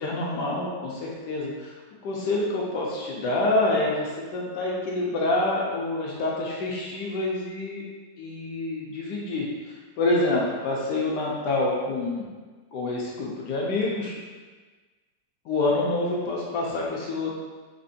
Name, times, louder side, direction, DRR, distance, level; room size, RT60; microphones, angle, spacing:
voice 1, 0.0-1.7 2.0-7.8 8.2-9.5 10.0-12.3 12.7-14.2 15.5-17.4, left 2 dB, 70° left, -3 dB, 1.2 m, -27 dB
4.2 x 2.9 x 2.7 m, 1.3 s
omnidirectional pair, 2.0 m